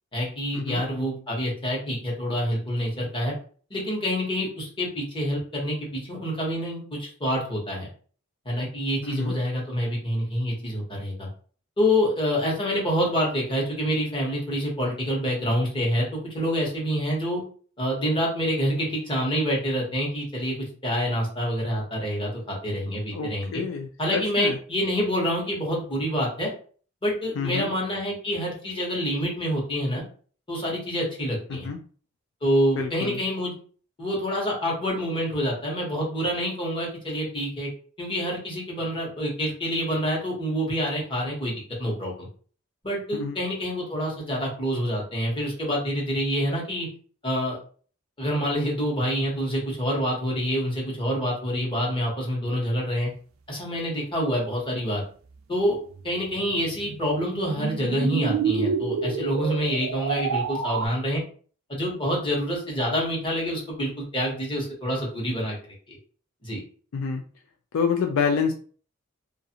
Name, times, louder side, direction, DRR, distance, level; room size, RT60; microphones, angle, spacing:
voice 1, 0.1-3.3 3.7-7.9 8.4-11.3 11.8-17.4 17.8-23.6 24.0-26.5 27.0-30.0 30.5-31.7 32.4-33.5 34.0-37.7 38.0-42.3 42.8-46.9 47.2-47.6 48.2-53.1 53.5-55.0 55.5-55.8 56.0-61.2 61.7-65.5 66.4-66.6, equal, 25° left, -3 dB, 1.0 m, -27 dB
voice 2, 9.0-9.3 23.1-24.6 27.4-27.7 31.5-31.8 32.7-33.2 43.1-43.3 66.9-67.2 67.7-68.5, left 5 dB, 70° left, 4 dB, 0.3 m, -27 dB
sound 1, 55.9-60.9, right 5 dB, 75° right, 0.4 m, -29 dB
2.4 x 2.4 x 2.8 m, 0.42 s
head